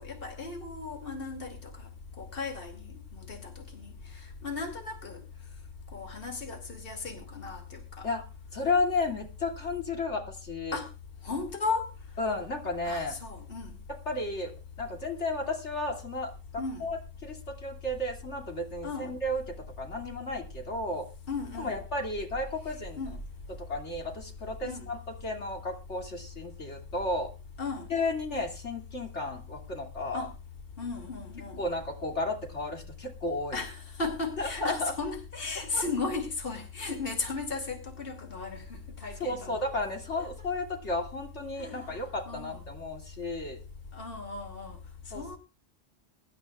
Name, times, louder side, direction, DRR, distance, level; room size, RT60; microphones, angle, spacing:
voice 1, 0.0-1.9 2.2-5.2 5.9-8.1 10.7-10.9 11.2-11.9 12.8-13.8 16.6-16.9 18.8-19.1 21.3-21.8 22.7-23.2 24.6-24.9 27.6-27.9 30.1-30.3 30.8-31.6 33.5-39.6 40.2-40.3 41.6-42.0 42.3-42.7 43.9-44.8 45.1-45.4, left 4 dB, 50° left, 3 dB, 2.8 m, -36 dB
voice 2, 8.5-10.8 12.2-13.2 14.1-14.5 14.8-16.3 16.8-19.4 19.8-21.1 21.6-23.0 23.7-27.3 27.9-30.3 31.6-33.6 34.4-34.9 35.7-35.8 39.2-43.6 45.1-45.4, left 2 dB, 65° left, 2 dB, 2.9 m, -33 dB
24.0 x 12.0 x 2.4 m, 0.31 s
omnidirectional pair, 1.3 m